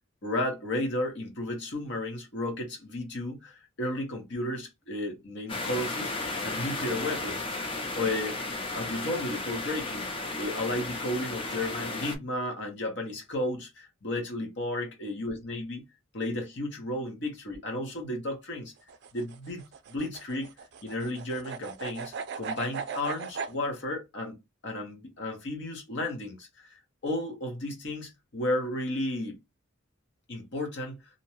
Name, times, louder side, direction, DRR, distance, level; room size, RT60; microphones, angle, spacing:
voice 1, 0.2-6.1 6.4-7.4 8.0-8.4 8.7-10.1 10.4-15.8 16.1-18.7 19.1-19.6 19.9-20.5 20.8-24.4 24.6-26.7 27.0-29.4 30.3-31.0, left 1 dB, 60° left, 1.0 m, -33 dB
sound 1, 5.5-12.2, left 2 dB, 25° left, 0.5 m, -34 dB
sound 2, 18.8-23.5, right 5 dB, 55° right, 0.4 m, -38 dB
2.6 x 2.2 x 2.9 m
head